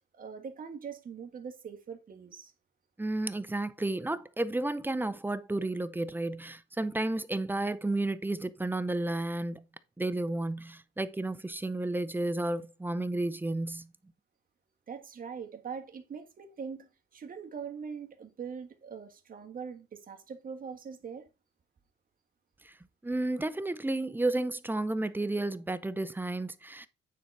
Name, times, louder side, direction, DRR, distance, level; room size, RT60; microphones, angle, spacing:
voice 1, 0.1-2.5 14.9-21.3, right 6 dB, 45° right, 1.6 m, -42 dB
voice 2, 3.0-9.6 10.0-13.9 22.6-22.7 23.0-26.9, right 2 dB, 10° right, 0.7 m, -32 dB
9.4 x 3.9 x 4.7 m
cardioid pair, 90°, 20 cm